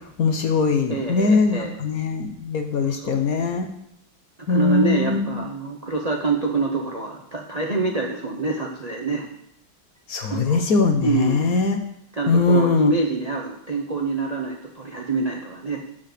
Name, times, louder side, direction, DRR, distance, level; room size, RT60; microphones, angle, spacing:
voice 1, 0.2-3.7 4.5-5.4 10.1-11.8 12.3-12.9, left 4 dB, 55° left, 6 dB, 1.1 m, -21 dB
voice 2, 0.9-1.7 2.8-3.1 4.5-9.3 10.3-10.7 11.0-11.6 12.1-15.8, right 3 dB, 60° right, 1 dB, 0.4 m, -26 dB
7.7 x 5.7 x 6.7 m, 0.75 s
omnidirectional pair, 2.2 m